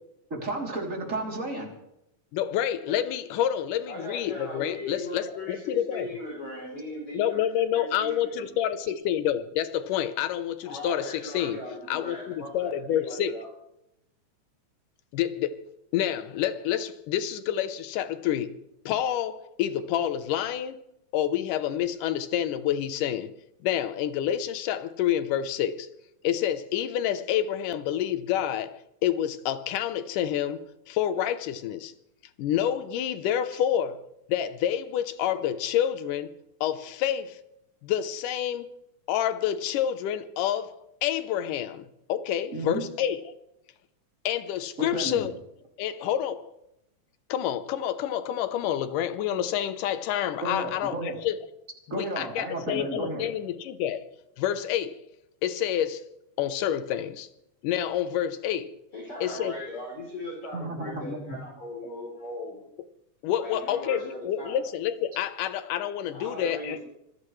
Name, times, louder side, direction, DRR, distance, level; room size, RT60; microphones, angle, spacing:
voice 1, 0.3-1.7 42.5-42.8 44.8-45.3 50.4-51.2 51.9-53.3 60.5-61.4, right 2 dB, 25° right, 3.4 m, -33 dB
voice 2, 2.3-6.1 7.1-11.6 11.9-13.3 15.1-15.6 15.9-18.5 18.9-20.8 21.1-23.3 23.6-25.9 26.2-31.9 32.4-34.0 34.3-36.3 36.6-37.4 37.8-38.7 39.1-43.2 44.3-45.3 45.8-46.5 47.3-51.4 51.9-54.1 54.4-54.9 55.4-56.0 56.4-57.3 57.6-58.7 59.2-59.6 63.2-66.8, left 10 dB, 90° left, 2.5 m, -28 dB
voice 3, 3.9-8.6 10.6-13.5 58.9-62.6 63.4-64.6 66.1-66.8, left 1 dB, 45° left, 4.5 m, -38 dB
25.5 x 16.5 x 3.2 m
omnidirectional pair, 3.6 m